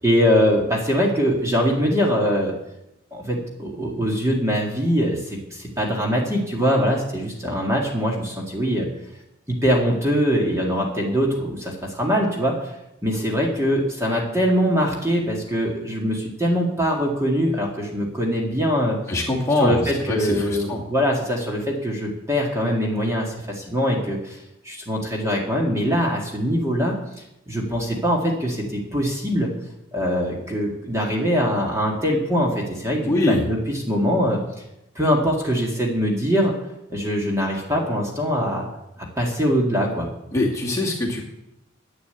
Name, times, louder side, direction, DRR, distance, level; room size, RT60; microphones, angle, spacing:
voice 1, 0.0-2.5 3.1-8.9 9.5-12.7 13.0-19.0 19.6-24.4 24.6-27.0 27.5-29.5 29.9-34.4 35.0-36.5 36.9-38.7 39.0-40.1, equal, 15° right, -1 dB, 2.0 m, -22 dB
voice 2, 19.1-20.8 33.1-33.4 40.3-41.2, left 2 dB, 15° left, -3 dB, 2.2 m, -23 dB
11.0 x 8.7 x 8.2 m, 0.88 s
head